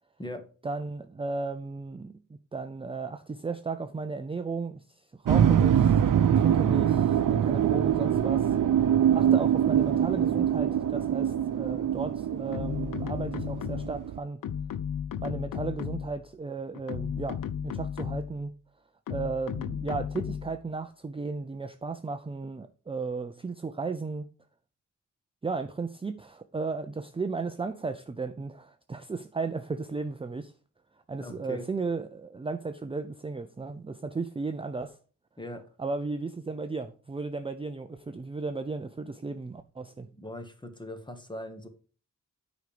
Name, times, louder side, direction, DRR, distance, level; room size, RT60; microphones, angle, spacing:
voice 1, 0.6-8.6 9.1-14.4 15.2-18.5 19.1-24.3 25.4-30.5 31.1-35.0 35.8-40.1, right 4 dB, 20° right, 0.4 m, -35 dB
sound 1, 5.2-14.2, right 9 dB, 85° right, 0.7 m, -24 dB
sound 2, 12.5-14.1 14.4-16.2 16.8-18.4 19.1-20.6, left 8 dB, 85° left, 0.6 m, -34 dB
voice 2, 31.2-31.7 35.4-35.6 40.1-41.7, left 1 dB, 15° left, 1.2 m, -40 dB
9.5 x 5.2 x 4.9 m
wide cardioid pair, 160°, 32 cm